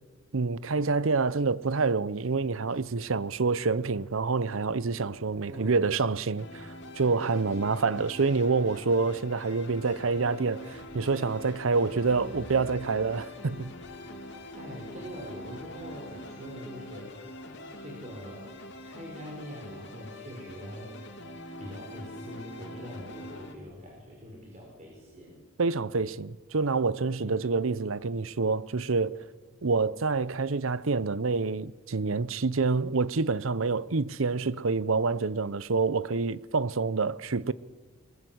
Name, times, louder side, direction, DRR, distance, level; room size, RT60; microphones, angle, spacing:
voice 1, 0.3-13.7 25.6-29.2 29.6-37.5, right 4 dB, 75° right, 0.7 m, -27 dB
sound 1, 2.8-16.2, equal, 5° left, 6.1 m, -57 dB
sound 2, 6.4-23.5, left 1 dB, 60° left, 3.2 m, -44 dB
voice 2, 7.5-8.1 14.5-17.2 17.8-18.6 18.8-20.9 21.6-25.4 27.1-27.4, equal, 35° right, 5.9 m, -43 dB
29.5 x 21.0 x 8.0 m
head